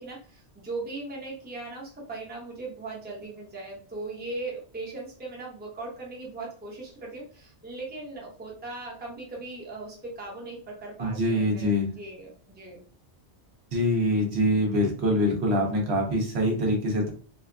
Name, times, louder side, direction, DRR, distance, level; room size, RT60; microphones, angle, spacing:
voice 1, 0.0-11.7 11.9-12.8, right 2 dB, 10° right, -3 dB, 0.6 m, -39 dB
voice 2, 11.0-11.9 13.7-17.1, left 1 dB, 70° right, 0 dB, 1.0 m, -24 dB
2.7 x 2.3 x 2.2 m, 0.42 s
omnidirectional pair, 1.2 m